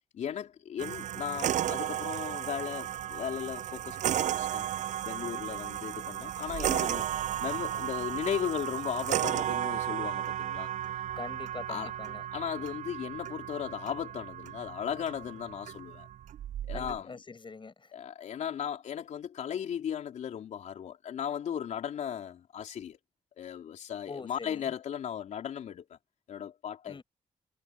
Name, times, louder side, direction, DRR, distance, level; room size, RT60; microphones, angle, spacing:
voice 1, 0.1-4.7 5.0-10.7 11.7-11.9 12.3-16.1 16.6-17.2 17.9-23.0 23.4-26.0 26.3-27.0, left 9 dB, 75° left, 3.8 m, -36 dB
sound 1, 0.8-17.0, right 11 dB, 85° right, 7.5 m, -34 dB
voice 2, 11.1-12.2 16.7-17.9 24.1-24.7 26.9-27.0, left 4 dB, 40° left, 6.5 m, -44 dB
cardioid pair, 60°, 12 cm